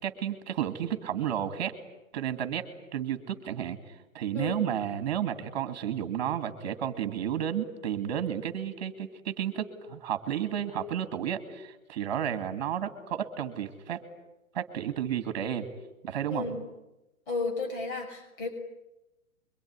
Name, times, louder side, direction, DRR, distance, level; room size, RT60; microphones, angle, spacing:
voice 1, 0.0-1.7 2.1-3.8 4.1-14.0 14.5-15.7 16.0-16.4, right 9 dB, 30° right, 10 dB, 2.5 m, -32 dB
voice 2, 4.3-4.7 16.3-16.6 17.3-18.5, left 3 dB, 35° left, 3 dB, 5.6 m, -33 dB
24.5 x 23.5 x 9.8 m, 0.95 s
hypercardioid pair, 175°, 43 cm